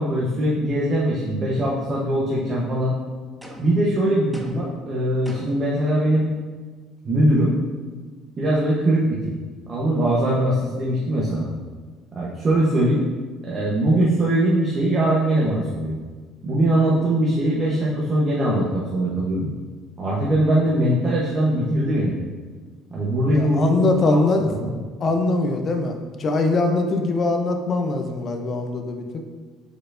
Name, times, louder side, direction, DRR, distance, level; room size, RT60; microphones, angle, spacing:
voice 1, 0.0-2.9 3.6-6.3 7.0-7.5 8.4-9.3 9.7-11.5 12.1-13.0 13.5-15.9 16.4-19.5 20.0-22.1 22.9-24.7, right 1 dB, 35° right, -5 dB, 0.8 m, -21 dB
sound 1, 3.4-3.8 4.3-4.8 5.2-5.7, right 1 dB, ahead, 0.6 m, -42 dB
voice 2, 23.3-24.4 25.0-29.1, left 2 dB, 40° left, 4 dB, 0.5 m, -22 dB
4.9 x 4.3 x 2.5 m, 1.4 s
cardioid pair, 110°, 0 cm